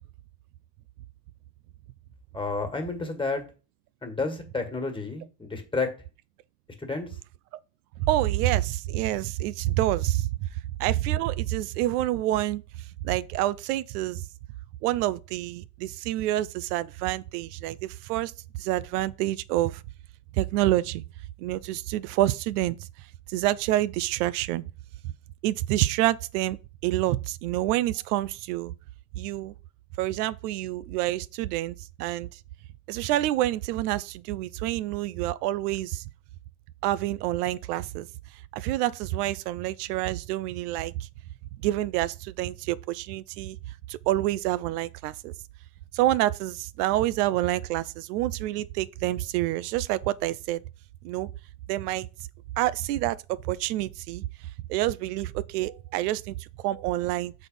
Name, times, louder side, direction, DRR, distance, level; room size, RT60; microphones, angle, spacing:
voice 1, 2.3-3.4 4.0-5.9 6.8-7.2, left 3 dB, 10° left, 1.9 m, -30 dB
voice 2, 8.1-10.5 10.8-14.3 14.8-18.3 18.6-19.8 20.3-21.0 21.4-22.9 23.3-24.7 25.4-26.6 26.8-28.7 29.2-29.5 30.0-32.4 32.9-36.0 36.8-38.1 38.5-41.1 41.6-45.3 45.9-50.6 51.0-51.3 51.7-52.1 52.6-53.2 53.4-54.3 54.7-57.3, right 15 dB, 80° right, 0.6 m, -27 dB
6.6 x 4.2 x 5.5 m
supercardioid pair, 110°, 46 cm